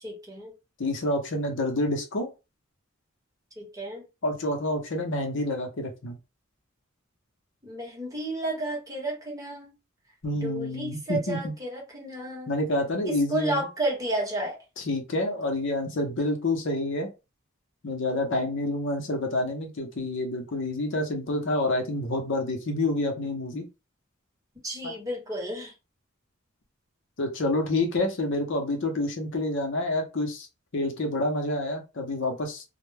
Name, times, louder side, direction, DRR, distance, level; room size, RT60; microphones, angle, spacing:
voice 1, 0.0-0.5 3.6-4.0 7.6-9.7 10.4-12.5 13.3-14.6 24.6-25.7, right 1 dB, 15° right, 1.0 m, -32 dB
voice 2, 0.8-2.3 4.2-6.2 10.2-11.5 12.5-13.7 14.8-17.1 17.8-23.7 24.8-24.9 27.2-30.5 30.7-32.6, left 1 dB, 60° left, 0.7 m, -28 dB
2.2 x 2.1 x 3.1 m
head